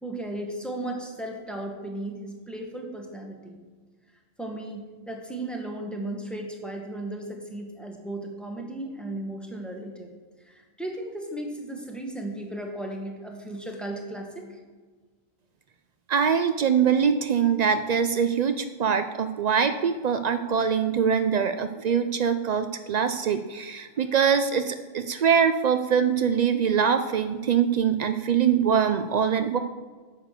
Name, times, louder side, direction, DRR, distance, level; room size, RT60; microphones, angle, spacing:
voice 1, 0.0-3.6 4.4-10.1 10.5-14.4, right 1 dB, ahead, 1 dB, 1.5 m, -35 dB
voice 2, 16.1-29.6, right 7 dB, 85° right, 9 dB, 0.3 m, -23 dB
9.7 x 6.6 x 6.6 m, 1.4 s
omnidirectional pair, 1.3 m